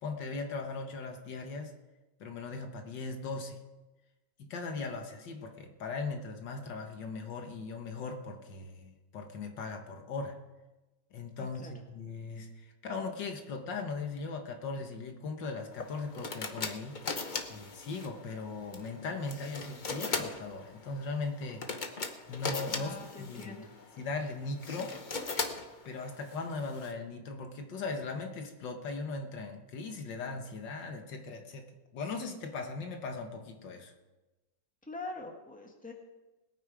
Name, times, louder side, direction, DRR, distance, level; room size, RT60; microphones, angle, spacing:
voice 1, 0.0-1.7 2.2-3.6 4.4-10.4 11.1-17.0 17.5-21.7 22.3-23.6 24.0-25.0 25.9-33.9, left 3 dB, 75° left, 5 dB, 2.0 m, -39 dB
voice 2, 11.4-11.7 22.7-23.7 34.9-35.9, left 3 dB, 5° left, 2 dB, 1.6 m, -44 dB
sound 1, 15.7-26.9, left 4 dB, 35° left, 0.8 m, -39 dB
20.5 x 9.1 x 4.9 m, 1.1 s
omnidirectional pair, 2.0 m